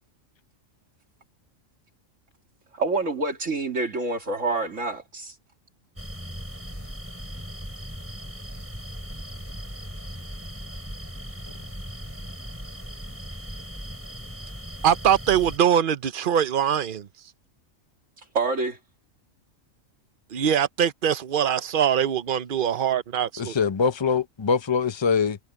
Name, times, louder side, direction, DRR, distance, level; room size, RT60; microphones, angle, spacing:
voice 1, 2.7-5.3 18.3-18.8, right 3 dB, 70° right, 2.9 m, -27 dB
sound 1, 6.0-15.6, equal, 10° right, 5.5 m, -38 dB
voice 2, 14.8-17.1 20.3-23.5, right 9 dB, 45° right, 0.9 m, -22 dB
voice 3, 23.4-25.4, left 6 dB, 25° left, 0.7 m, -23 dB
omnidirectional pair, 1.4 m